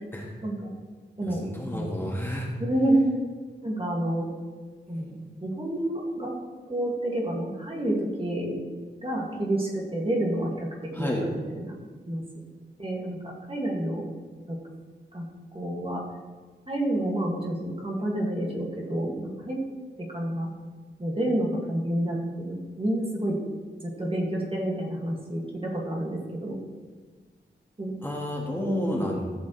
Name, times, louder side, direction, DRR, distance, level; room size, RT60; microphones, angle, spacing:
voice 1, 1.2-2.5 10.9-11.2 28.0-29.3, left 1 dB, 10° left, -3 dB, 1.5 m, -31 dB
voice 2, 2.6-3.1 3.6-4.3 4.9-6.3 6.7-8.5 9.0-11.7 12.1-12.2 12.8-14.0 14.5-14.6 15.1-15.3 15.5-16.0 16.7-19.6 20.0-20.5 21.0-23.4 23.8-26.6 27.8-27.9 28.6-29.1, right 1 dB, 30° right, -2 dB, 2.0 m, -29 dB
14.0 x 7.6 x 3.2 m, 1.4 s
wide cardioid pair, 120°, 19 cm